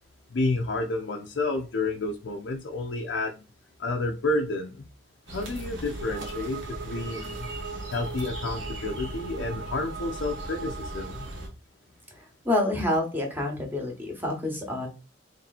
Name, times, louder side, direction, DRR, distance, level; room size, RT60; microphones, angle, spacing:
voice 1, 0.3-3.4 3.8-4.8 5.3-7.5 7.9-11.3, left 2 dB, 70° left, 0.5 m, -30 dB
sound 1, 5.3-11.5, right 1 dB, 75° right, 1.4 m, -39 dB
sound 2, 5.7-11.5, right 5 dB, 60° right, 0.3 m, -40 dB
voice 2, 12.4-14.9, left 1 dB, 10° right, 1.0 m, -27 dB
3.2 x 2.8 x 4.1 m
head